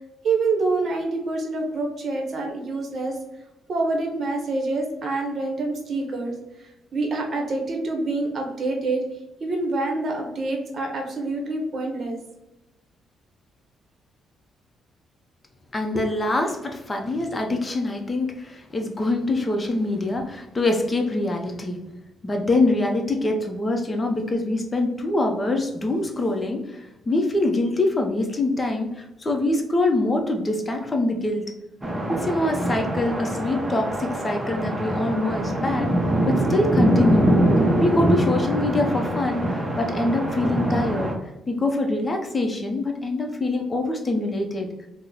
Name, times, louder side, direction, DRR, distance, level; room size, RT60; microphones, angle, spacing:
voice 1, 0.2-3.2 3.7-9.0 9.4-12.2, right 3 dB, 50° right, 1 dB, 0.8 m, -26 dB
voice 2, 15.7-21.8 22.2-31.4 32.2-35.9 36.2-37.3 37.8-41.1 41.5-44.7, left 2 dB, 25° left, 3 dB, 0.6 m, -24 dB
sound 1, 31.8-41.1, right 1 dB, 15° right, 0.7 m, -23 dB
2.9 x 2.0 x 3.8 m, 0.96 s
cardioid pair, 90°, 0 cm